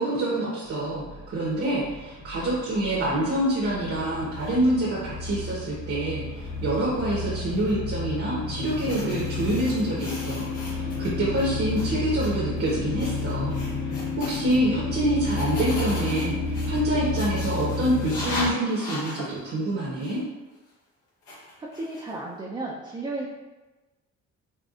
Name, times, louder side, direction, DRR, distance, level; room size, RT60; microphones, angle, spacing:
voice 1, 0.0-20.2, right 1 dB, 50° right, -7 dB, 0.9 m, -26 dB
sound 1, 0.7-18.5, left 3 dB, 60° left, 0.6 m, -31 dB
sound 2, 4.3-4.6 5.0-5.7 6.4-6.6 7.5-7.7 8.5-11.1 11.3-11.9 12.1-12.3 12.6-12.7 13.0-14.6 15.2-19.3 20.0-20.2 21.2-22.2, left 1 dB, 90° left, 1.2 m, -38 dB
voice 2, 21.6-23.3, right 2 dB, 15° right, -4 dB, 0.4 m, -34 dB
4.3 x 2.3 x 2.4 m, 1.2 s
cardioid pair, 90°, 30 cm